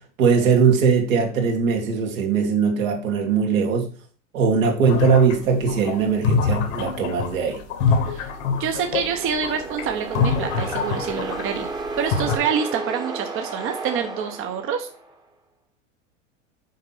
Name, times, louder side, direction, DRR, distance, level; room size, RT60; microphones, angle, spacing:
voice 1, 0.2-3.9 4.3-7.6, right 5 dB, 75° right, 2.3 m, -20 dB
sound 1, 4.9-11.6 11.9-12.4, left 5 dB, 60° left, 1.6 m, -24 dB
sound 2, 8.2-15.2, right 3 dB, 10° right, 1.1 m, -33 dB
voice 2, 8.6-11.7 12.0-14.9, right 7 dB, 30° right, 0.9 m, -27 dB
6.6 x 4.5 x 4.0 m
hypercardioid pair, 110°, 40 cm